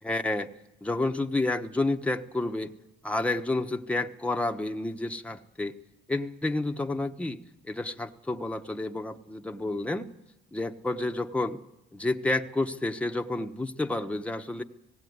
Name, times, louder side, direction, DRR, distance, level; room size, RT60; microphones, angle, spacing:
voice 1, 0.0-0.5 0.8-2.7 3.0-5.7 6.1-7.4 7.6-10.1 10.5-11.6 11.9-14.6, left 2 dB, 5° left, 5 dB, 1.1 m, -30 dB
18.0 x 16.5 x 9.5 m, 0.90 s
cardioid pair, 90°, 20 cm